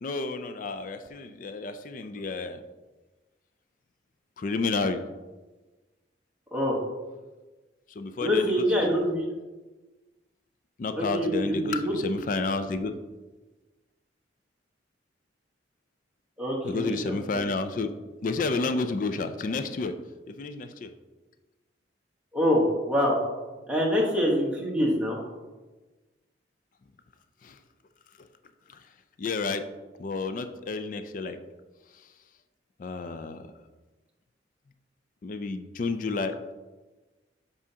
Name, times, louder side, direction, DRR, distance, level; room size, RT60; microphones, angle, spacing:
voice 1, 0.0-2.6 4.4-5.0 8.0-9.0 10.8-13.0 16.6-17.9 18.2-19.9 20.3-20.9 27.4-27.6 28.7-28.8 29.2-29.6 30.0-31.4 32.8-33.4 35.2-36.4, left 3 dB, 45° left, 9 dB, 0.3 m, -30 dB
voice 2, 8.2-9.2 10.9-11.9 16.4-17.4 22.3-23.2 23.7-25.2, equal, 5° right, -4 dB, 1.2 m, -25 dB
7.3 x 4.9 x 2.8 m, 1.2 s
head